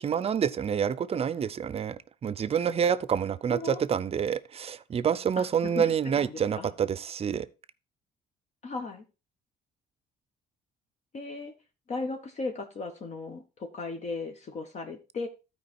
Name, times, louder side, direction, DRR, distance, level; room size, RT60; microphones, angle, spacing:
voice 1, 0.0-7.5, right 8 dB, 35° right, 0.6 m, -28 dB
voice 2, 3.5-3.8 5.4-6.7 8.6-9.0 11.1-11.5 11.9-15.3, left 3 dB, 45° left, 1.2 m, -36 dB
12.5 x 4.7 x 4.4 m
cardioid pair, 110°, 17 cm